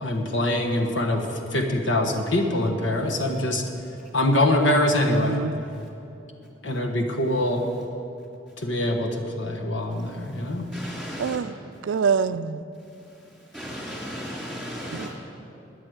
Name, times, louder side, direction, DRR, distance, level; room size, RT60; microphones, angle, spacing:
voice 1, 0.0-1.2 1.5-3.6 4.1-5.4 6.6-7.7 8.6-10.7, left 1 dB, 80° left, 4 dB, 1.4 m, -24 dB
voice 2, 5.1-5.6 11.2-11.6 11.8-12.6 14.9-15.1, right 6 dB, 85° right, 14 dB, 0.4 m, -25 dB
voice 3, 9.9-11.4 12.9-15.1, equal, ahead, -4 dB, 3.2 m, -37 dB
13.5 x 9.6 x 8.0 m, 2.9 s
head